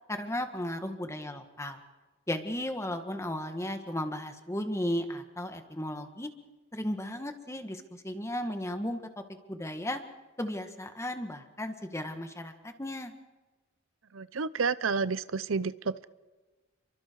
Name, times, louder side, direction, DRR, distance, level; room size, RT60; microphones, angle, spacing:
voice 1, 0.1-1.8 2.3-6.3 6.7-9.0 9.5-10.0 10.4-13.1, left 1 dB, 15° left, 6 dB, 2.0 m, -35 dB
voice 2, 14.1-16.0, right 5 dB, 80° right, 16 dB, 0.7 m, -30 dB
30.0 x 24.0 x 4.8 m, 1.2 s
head